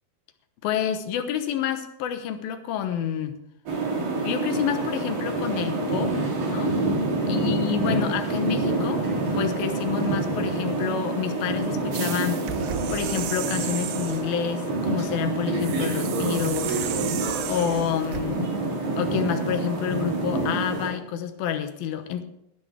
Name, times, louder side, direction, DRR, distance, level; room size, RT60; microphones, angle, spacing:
voice 1, 0.6-3.4 4.2-6.2 6.4-6.8 7.3-12.4 12.9-16.8 17.5-18.5 19.0-22.2, left 9 dB, 75° left, 8 dB, 2.8 m, -28 dB
sound 1, 3.7-20.9, right 2 dB, 65° right, 4.7 m, -27 dB
sound 2, 11.9-14.3 15.6-18.3, right 11 dB, 90° right, 2.8 m, -34 dB
19.5 x 9.7 x 3.4 m, 0.79 s
omnidirectional pair, 4.3 m